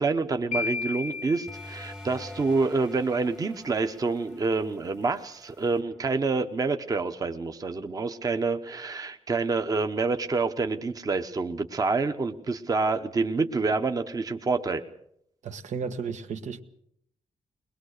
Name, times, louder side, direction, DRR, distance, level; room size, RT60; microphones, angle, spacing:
voice 1, 0.0-14.8, right 4 dB, 30° right, 1.0 m, -27 dB
sound 1, 0.5-2.6, left 5 dB, 75° left, 0.8 m, -34 dB
sound 2, 1.5-6.7, left 1 dB, 5° right, 1.1 m, -47 dB
voice 2, 15.4-16.6, right 5 dB, 80° right, 1.5 m, -33 dB
22.0 x 21.0 x 6.6 m
wide cardioid pair, 170°, 12 cm